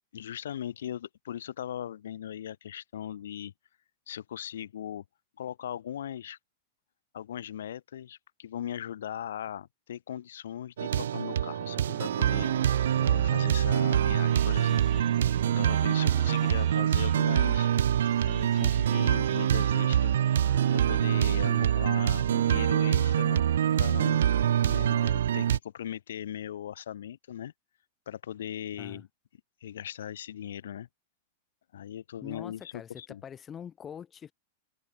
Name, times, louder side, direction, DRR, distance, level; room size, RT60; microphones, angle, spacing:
voice 1, 0.1-3.5 4.1-5.0 5.4-6.4 7.1-15.1 15.6-17.7 18.2-20.1 20.7-23.4 23.8-24.4 24.7-27.5 28.1-29.1 29.6-30.9 31.7-33.2, left 10 dB, 85° left, 2.1 m, -39 dB
sound 1, 10.8-25.6, right 10 dB, 90° right, 0.5 m, -25 dB
sound 2, 11.3-22.2, right 22 dB, 35° right, 1.0 m, -44 dB
voice 2, 24.6-25.0 28.8-29.0 32.2-34.3, left 8 dB, 15° left, 2.0 m, -44 dB
open air
supercardioid pair, 160°, 0 cm